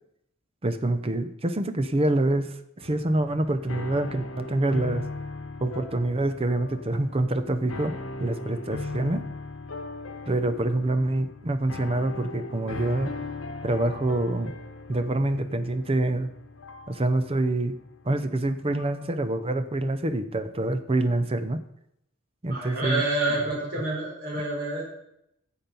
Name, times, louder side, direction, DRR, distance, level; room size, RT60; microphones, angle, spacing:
voice 1, 0.6-5.0 5.6-9.3 10.3-13.2 13.6-14.5 14.9-16.3 16.9-17.8 18.0-21.6 22.4-23.0, right 2 dB, 30° right, 10 dB, 0.7 m, -26 dB
sound 1, 2.8-19.1, left 3 dB, 85° left, 1.1 m, -39 dB
voice 2, 22.5-24.8, right 2 dB, 55° right, -3 dB, 3.9 m, -28 dB
10.0 x 7.3 x 5.4 m, 0.78 s
head